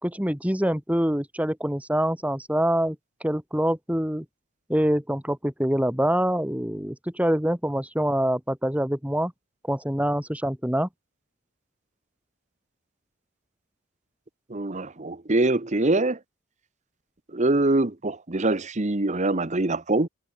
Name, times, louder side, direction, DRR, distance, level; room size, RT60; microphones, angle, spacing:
voice 1, 0.0-3.0 3.2-4.3 4.7-9.3 9.7-10.9, equal, 5° right, 2.2 m, -25 dB
voice 2, 14.5-16.2 17.3-20.1, right 2 dB, 30° right, 1.0 m, -24 dB
head